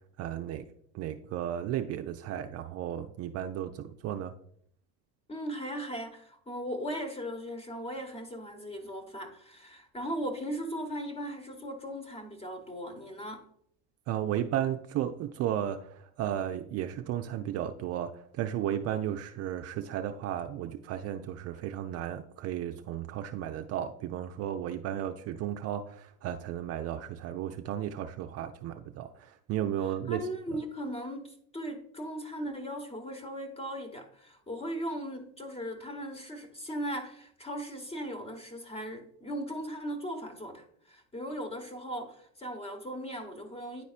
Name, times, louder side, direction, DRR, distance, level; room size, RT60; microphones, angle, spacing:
voice 1, 0.2-0.7 0.9-4.3 14.1-30.3, right 11 dB, 45° right, 0.4 m, -34 dB
voice 2, 5.3-13.4 30.1-43.8, equal, 15° left, 1.2 m, -38 dB
9.8 x 4.1 x 2.4 m
supercardioid pair, 105°, 34 cm